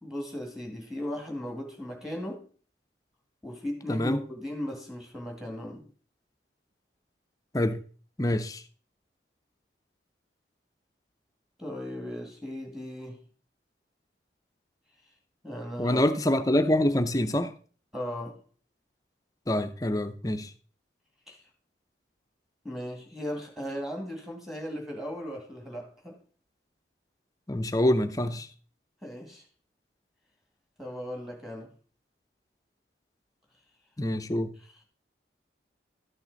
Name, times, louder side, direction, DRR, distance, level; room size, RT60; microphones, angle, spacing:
voice 1, 0.0-2.5 3.4-5.8 11.6-13.2 15.4-16.0 17.9-18.4 21.3-21.4 22.6-26.2 29.0-29.4 30.8-31.7, equal, ahead, 2.0 m, -37 dB
voice 2, 3.9-4.2 7.5-7.8 8.2-8.6 15.8-17.5 19.5-20.5 27.5-28.5 34.0-34.5, left 1 dB, 20° left, 0.6 m, -26 dB
13.0 x 6.0 x 3.9 m
head